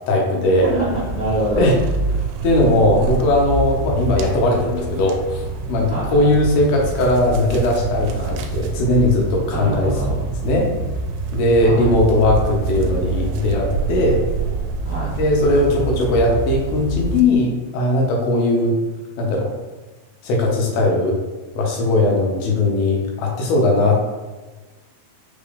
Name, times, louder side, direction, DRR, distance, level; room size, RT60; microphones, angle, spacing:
voice 1, 0.1-0.7 1.5-1.8 2.4-9.9 10.4-10.7 11.3-14.2 15.2-18.7 19.2-19.5 20.2-21.2 21.5-24.0, left 1 dB, 90° left, -1 dB, 2.6 m, -18 dB
voice 2, 0.6-1.7 2.1-2.3 5.9-6.2 9.5-10.2 11.6-11.9 14.8-15.1, right 1 dB, 65° left, -12 dB, 1.0 m, -25 dB
sound 1, 0.6-17.2, right 3 dB, 80° right, 2.1 m, -26 dB
5.7 x 2.5 x 3.4 m, 1.2 s
omnidirectional pair, 4.1 m